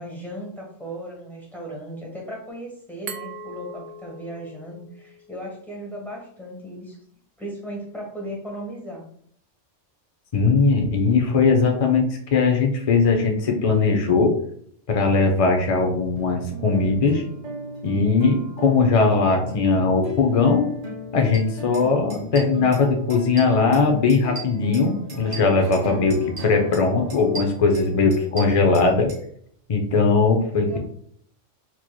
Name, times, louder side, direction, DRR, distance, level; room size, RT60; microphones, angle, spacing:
voice 1, 0.0-7.0 7.4-9.0 30.4-30.8, equal, ahead, -3 dB, 1.1 m, -36 dB
Glass, 3.1-5.9, right 4 dB, 75° right, 0.9 m, -40 dB
voice 2, 10.3-14.3 14.9-17.2 17.8-20.7 21.1-29.1 29.7-30.8, left 4 dB, 60° left, 3 dB, 0.3 m, -19 dB
sound 1, 16.2-28.9, right 1 dB, 55° right, 0.4 m, -37 dB
sound 2, 21.3-21.4 21.7-21.8 22.1-22.8 23.1-23.8 24.1-25.9 26.1-26.8 27.1-29.2, right 4 dB, 90° right, 1.6 m, -38 dB
4.5 x 3.0 x 2.2 m, 0.64 s
omnidirectional pair, 1.3 m